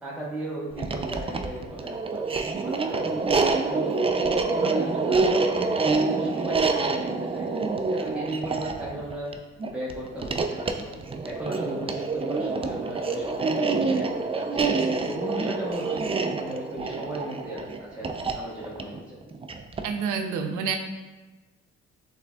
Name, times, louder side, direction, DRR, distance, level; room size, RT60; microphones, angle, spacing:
voice 1, 0.0-3.3 3.7-4.0 4.5-7.6 7.9-9.3 9.7-10.9 11.2-19.2, right 1 dB, 5° right, -7 dB, 1.0 m, -36 dB
sound 1, 0.7-20.0, right 3 dB, 20° right, 0.3 m, -27 dB
voice 2, 19.8-20.8, right 6 dB, 85° right, 4 dB, 0.5 m, -28 dB
6.6 x 3.4 x 2.2 m, 1.2 s
cardioid pair, 90°, 30 cm